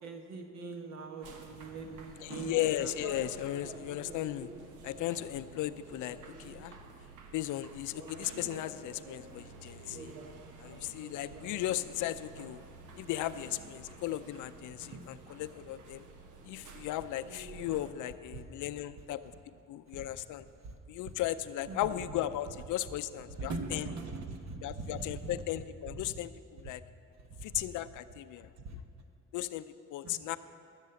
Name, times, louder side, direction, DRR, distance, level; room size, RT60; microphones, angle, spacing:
voice 1, 0.0-2.5 18.3-18.4 20.6-20.7 21.7-21.9 23.4-25.0 27.4-27.5 28.6-28.7 30.0-30.2, right 3 dB, 65° right, 5 dB, 1.2 m, -41 dB
sound 1, 1.2-17.9, right 3 dB, 80° right, 1.2 m, -49 dB
voice 2, 2.2-4.5 4.8-6.7 7.3-10.2 10.6-12.6 13.0-16.0 16.4-19.2 19.7-20.5 20.9-23.9 24.6-26.8 27.4-28.5 29.3-29.6 29.9-30.4, left 13 dB, 80° left, 13 dB, 0.5 m, -36 dB
14.0 x 7.3 x 6.9 m, 2.4 s
cardioid pair, 90°, 30 cm